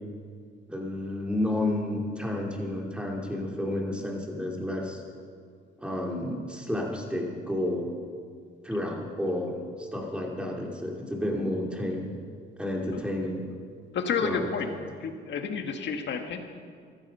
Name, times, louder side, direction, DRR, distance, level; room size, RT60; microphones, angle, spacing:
voice 1, 0.7-5.0 5.8-7.9 8.6-12.2 12.6-13.4 14.2-14.5, left 1 dB, 5° right, -1 dB, 3.1 m, -31 dB
voice 2, 13.9-14.7 15.0-16.4, left 6 dB, 65° left, 5 dB, 1.6 m, -30 dB
15.0 x 13.5 x 5.5 m, 2.1 s
cardioid pair, 90°, 20 cm